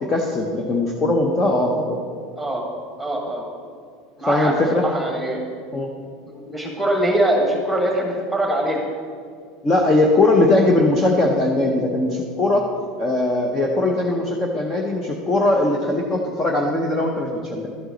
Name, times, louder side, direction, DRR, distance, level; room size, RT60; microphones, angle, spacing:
voice 1, 0.0-2.0 4.2-4.8 5.7-5.9 9.6-12.7 13.0-17.7, left 2 dB, 15° left, 1 dB, 0.6 m, -20 dB
voice 2, 3.0-3.4 4.2-5.4 6.3-8.9, right 1 dB, ahead, 0 dB, 1.4 m, -22 dB
11.5 x 7.9 x 3.8 m, 2.1 s
cardioid pair, 175°, 0 cm